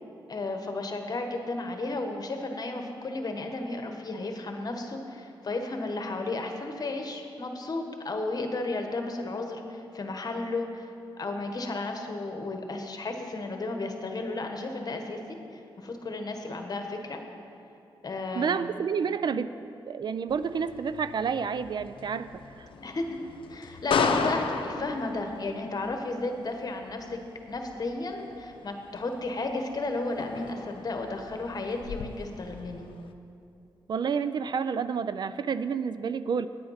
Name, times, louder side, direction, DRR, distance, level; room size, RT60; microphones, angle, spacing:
voice 1, 0.3-15.2 15.5-17.2 18.0-18.7 22.8-23.2 23.5-27.2 27.5-32.9, left 2 dB, 45° left, 4 dB, 1.2 m, -33 dB
voice 2, 18.4-19.5 19.9-22.3 33.9-36.5, right 6 dB, 55° right, 13 dB, 0.3 m, -29 dB
sound 1, 20.3-33.1, left 5 dB, 70° left, 0.6 m, -36 dB
9.2 x 8.7 x 5.7 m, 2.7 s
cardioid pair, 80°, 9 cm